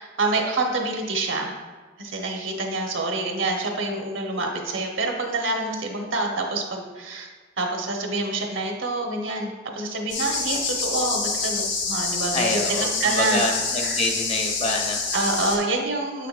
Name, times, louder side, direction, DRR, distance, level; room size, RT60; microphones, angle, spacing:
voice 1, 0.0-1.5 2.0-7.3 7.6-13.4 13.8-14.0 15.1-16.3, right 2 dB, 80° right, 1 dB, 1.0 m, -27 dB
sound 1, 10.1-15.6, left 4 dB, 70° left, 1.4 m, -27 dB
voice 2, 12.3-15.0, left 2 dB, 30° left, 2 dB, 0.8 m, -26 dB
8.2 x 5.8 x 2.5 m, 1.3 s
head